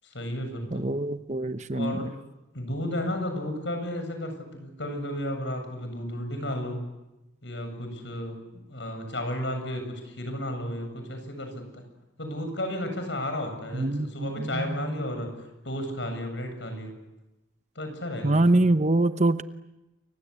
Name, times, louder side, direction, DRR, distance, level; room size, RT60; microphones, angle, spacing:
voice 1, 0.0-0.9 1.7-2.1 2.5-6.9 7.4-8.4 8.7-11.8 12.2-15.3 15.6-16.9 17.8-18.5, left 1 dB, 70° left, 6 dB, 7.7 m, -33 dB
voice 2, 0.7-2.1 13.7-14.9 18.2-19.4, right 2 dB, 35° right, 11 dB, 0.9 m, -24 dB
29.0 x 25.0 x 8.3 m, 0.99 s
head